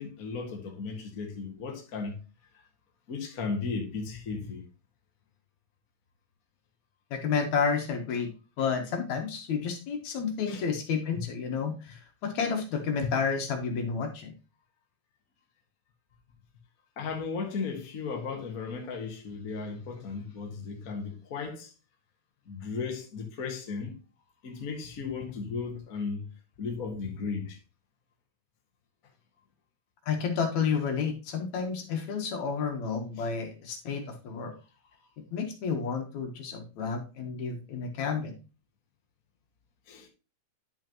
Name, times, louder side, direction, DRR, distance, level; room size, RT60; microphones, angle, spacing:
voice 1, 0.0-2.2 3.1-4.6 10.5-10.6 11.1-11.2 13.0-13.1 17.0-21.7 22.5-24.0 24.4-26.3 26.6-27.6 33.2-33.3 39.9-40.1, left 5 dB, 35° left, 1.5 m, -35 dB
voice 2, 7.1-8.3 8.6-14.3 30.1-34.5 35.3-38.4, left 6 dB, 65° left, 2.5 m, -31 dB
10.5 x 5.6 x 3.0 m
omnidirectional pair, 3.7 m